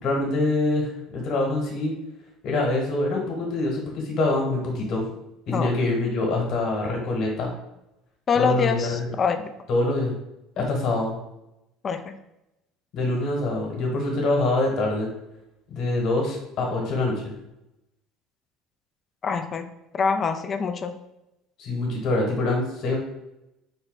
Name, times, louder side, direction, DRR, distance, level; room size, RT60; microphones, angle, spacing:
voice 1, 0.0-1.9 2.4-5.0 5.5-7.5 8.3-9.1 9.7-10.1 10.6-11.2 12.9-15.1 15.7-17.3 21.6-23.0, left 2 dB, 55° left, 0 dB, 1.2 m, -25 dB
voice 2, 8.3-9.5 11.8-12.2 19.2-19.7 19.9-21.0, left 6 dB, 40° left, 8 dB, 0.4 m, -25 dB
4.2 x 2.2 x 4.0 m, 0.90 s
hypercardioid pair, 80°, 0 cm